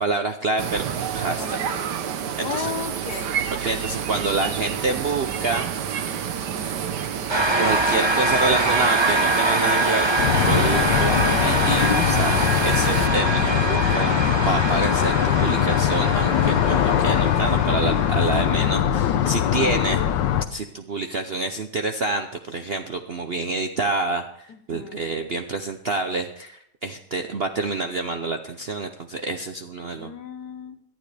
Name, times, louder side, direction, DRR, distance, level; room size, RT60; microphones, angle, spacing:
voice 1, 0.0-1.6 2.5-2.7 3.6-5.8 6.6-6.7 7.6-10.1 10.4-20.0 20.5-30.1, right 3 dB, 55° right, 6 dB, 0.7 m, -27 dB
sound 1, 0.6-13.1, right 8 dB, 70° right, 1.5 m, -29 dB
voice 2, 1.4-1.9 2.4-3.4 24.5-25.1 30.0-30.8, left 7 dB, 65° left, 10 dB, 1.5 m, -35 dB
sound 2, 7.3-18.8, right 2 dB, 20° right, 0.7 m, -24 dB
sound 3, 10.2-20.4, left 10 dB, 85° left, 1.5 m, -21 dB
18.0 x 12.0 x 3.4 m, 0.69 s
omnidirectional pair, 1.9 m